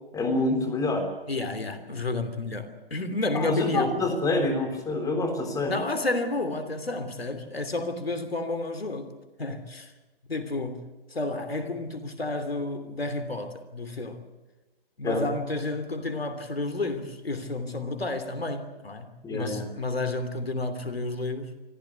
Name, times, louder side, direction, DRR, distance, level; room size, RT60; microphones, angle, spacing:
voice 1, 0.1-1.1 3.3-5.7 15.0-15.2 19.2-19.7, left 2 dB, 10° left, 3.5 m, -26 dB
voice 2, 1.3-4.0 5.7-9.1 9.4-9.9 10.3-10.8 11.1-14.3 15.0-21.5, left 2 dB, 85° left, 3.1 m, -31 dB
25.0 x 15.5 x 8.3 m
figure-of-eight pair, 130°, 29 cm